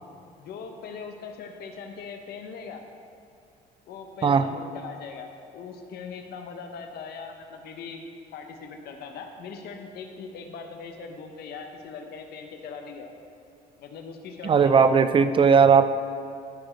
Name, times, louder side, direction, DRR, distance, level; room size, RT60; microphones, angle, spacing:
voice 1, 0.3-2.8 3.9-5.3 5.5-8.0 8.3-13.1 13.8-15.0, left 5 dB, 70° left, 5 dB, 1.0 m, -40 dB
voice 2, 14.4-15.9, right 6 dB, 30° right, 11 dB, 0.4 m, -18 dB
14.0 x 4.7 x 4.5 m, 2.4 s
cardioid pair, 110°, 17 cm